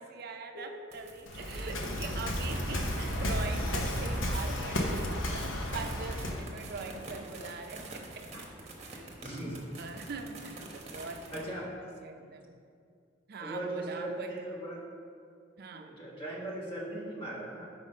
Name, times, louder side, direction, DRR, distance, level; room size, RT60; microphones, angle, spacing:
voice 1, 0.0-8.5 8.9-12.6 13.3-14.5 15.6-15.9, right 4 dB, 50° right, 5 dB, 0.5 m, -43 dB
sound 1, 0.9-11.4, right 2 dB, 35° right, 0.9 m, -47 dB
Waves surf, 1.3-6.5, left 1 dB, 80° left, 0.8 m, -33 dB
voice 2, 9.2-9.6 11.3-11.7 13.4-14.8 15.7-17.7, right 1 dB, 25° left, -4 dB, 1.2 m, -39 dB
5.1 x 4.9 x 5.4 m, 2.3 s
head